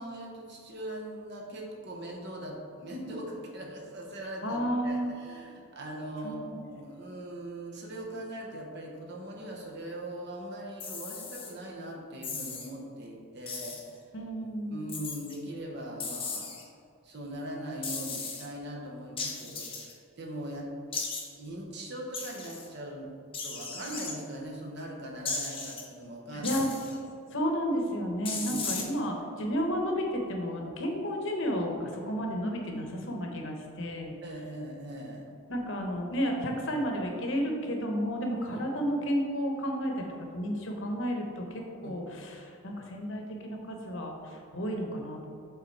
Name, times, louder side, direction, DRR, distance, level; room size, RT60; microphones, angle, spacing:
voice 1, 0.0-13.9 14.7-16.5 17.0-20.7 21.4-23.1 23.4-26.5 28.3-28.9 34.2-35.3 38.5-38.6 41.8-42.0, right 1 dB, 50° right, -1 dB, 1.0 m, -40 dB
voice 2, 4.4-5.1 6.2-6.6 14.1-14.8 26.4-26.7 27.3-34.1 35.5-40.0 40.3-45.3, equal, 55° left, 1 dB, 0.9 m, -32 dB
sound 1, 10.8-11.5 12.2-12.7 13.5-13.9 14.9-15.4 16.0-16.6 17.8-18.4 19.2-19.9 20.9-21.2 22.1-22.7 23.3-24.1 25.2-25.8 26.4-27.0 28.2-28.8, left 4 dB, 25° left, 0.8 m, -36 dB
6.9 x 3.9 x 4.5 m, 2.4 s
head